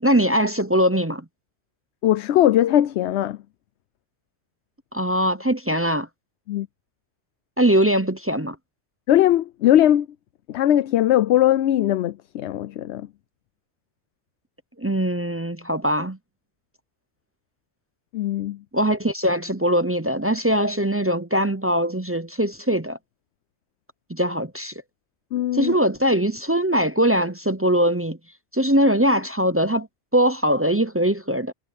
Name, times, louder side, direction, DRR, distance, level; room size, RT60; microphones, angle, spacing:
voice 1, 0.0-1.2 4.9-6.1 7.6-8.6 14.8-16.2 18.7-23.0 24.1-24.7 25.5-28.2 28.5-29.9 30.1-31.5, equal, 15° right, 0.5 m, -21 dB
voice 2, 2.0-3.4 6.5-6.7 9.1-10.1 10.5-13.1 18.1-18.6 25.3-25.7, left 12 dB, 70° left, 0.9 m, -20 dB
omnidirectional pair, 1.2 m